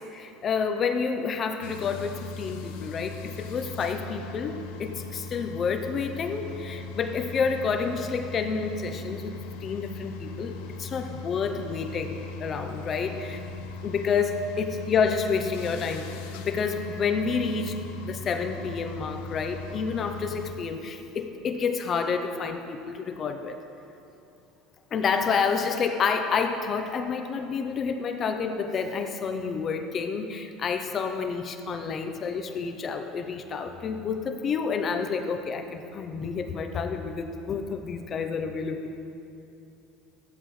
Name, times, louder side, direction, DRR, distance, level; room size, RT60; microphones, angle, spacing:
voice 1, 0.1-10.5 10.8-13.4 13.8-16.0 16.3-17.8 18.0-23.6 24.9-38.9, left 5 dB, 30° left, 6 dB, 0.6 m, -29 dB
sound 1, 1.6-20.5, left 3 dB, 90° left, 0.9 m, -39 dB
15.0 x 11.5 x 3.2 m, 2.7 s
cardioid pair, 155°, 0 cm